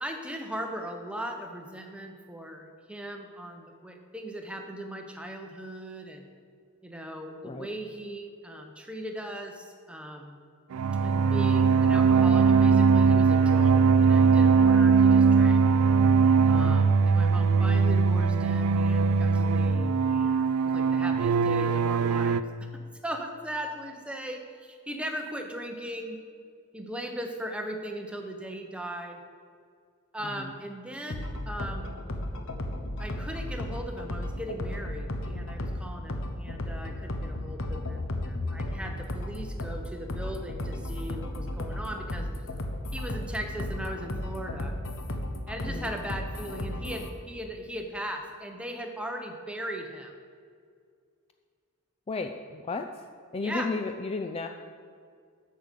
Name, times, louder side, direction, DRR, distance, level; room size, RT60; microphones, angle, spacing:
voice 1, 0.0-6.3 6.8-10.4 11.0-13.8 14.0-15.6 16.5-22.4 23.0-26.2 26.7-29.2 30.1-32.0 33.0-42.3 42.9-44.7 45.5-50.1 53.4-53.7, equal, 5° right, 4 dB, 0.9 m, -38 dB
sound 1, 10.7-22.4, right 5 dB, 70° right, 0.3 m, -21 dB
sound 2, 31.1-47.1, left 1 dB, 60° left, 0.9 m, -34 dB
voice 2, 52.1-52.9 53.3-54.5, left 3 dB, 25° left, 5 dB, 0.4 m, -33 dB
8.6 x 6.6 x 6.8 m, 2.1 s
head